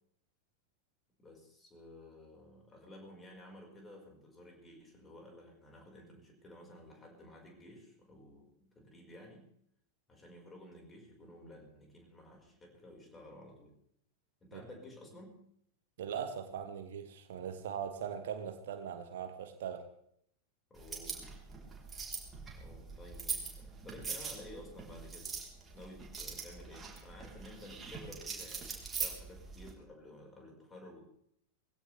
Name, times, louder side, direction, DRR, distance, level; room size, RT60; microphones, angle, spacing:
voice 1, 1.2-9.5 10.1-13.7 14.4-15.4 20.7-21.3 22.5-25.3 25.7-31.1, left 1 dB, 15° left, 1 dB, 5.3 m, -53 dB
voice 2, 16.0-19.9, right 8 dB, 60° right, 9 dB, 1.4 m, -40 dB
sound 1, 20.8-29.7, right 5 dB, 15° right, 4.1 m, -42 dB
20.5 x 16.5 x 3.5 m, 0.70 s
figure-of-eight pair, 90°, 0 cm